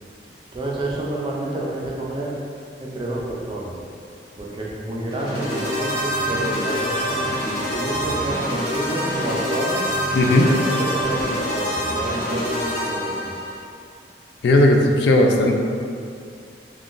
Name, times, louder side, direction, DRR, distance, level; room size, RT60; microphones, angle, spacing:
voice 1, 0.5-2.3 2.8-3.7 4.4-9.8 10.4-13.4, right 1 dB, 25° right, -4 dB, 0.4 m, -29 dB
sound 1, 5.1-13.6, equal, 30° left, 1.4 m, -25 dB
voice 2, 10.1-10.5 14.4-15.5, left 1 dB, 70° left, 2 dB, 0.3 m, -16 dB
3.6 x 2.3 x 2.5 m, 2.3 s
head